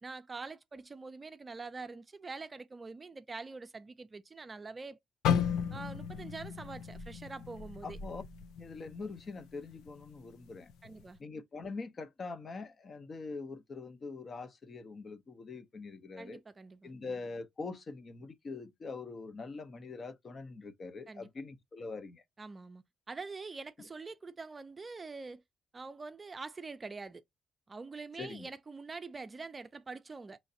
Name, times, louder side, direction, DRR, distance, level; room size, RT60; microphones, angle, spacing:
voice 1, 0.0-5.0 5.7-8.0 10.8-11.2 16.2-16.9 21.1-21.3 22.4-25.4 25.7-27.2 27.7-30.4, right 4 dB, 30° right, 0.4 m, -45 dB
sound 1, 5.2-9.3 9.6-9.9 10.5-10.9, left 8 dB, 90° left, 0.4 m, -34 dB
voice 2, 7.8-8.2 8.6-10.7 11.2-16.4 16.8-22.2 28.2-28.5, left 4 dB, 40° left, 0.7 m, -43 dB
5.5 x 3.1 x 2.7 m
cardioid pair, 90°, 0 cm